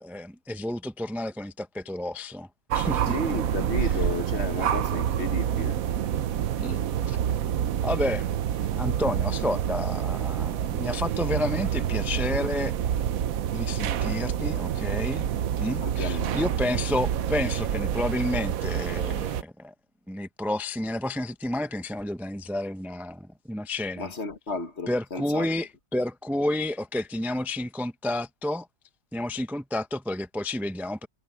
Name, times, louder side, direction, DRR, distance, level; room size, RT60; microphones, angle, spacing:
voice 1, 0.0-2.5 2.7-3.1 6.6-7.2 7.8-8.3 8.7-12.7 13.5-15.2 15.6-19.7 20.1-24.1 24.9-28.7 29.1-31.1, left 1 dB, ahead, 0.5 m, -30 dB
sound 1, 2.7-19.4, right 10 dB, 85° right, 1.2 m, -27 dB
voice 2, 3.1-5.8 15.8-16.4 24.0-25.5, left 3 dB, 55° left, 1.8 m, -33 dB
omnidirectional pair, 1.4 m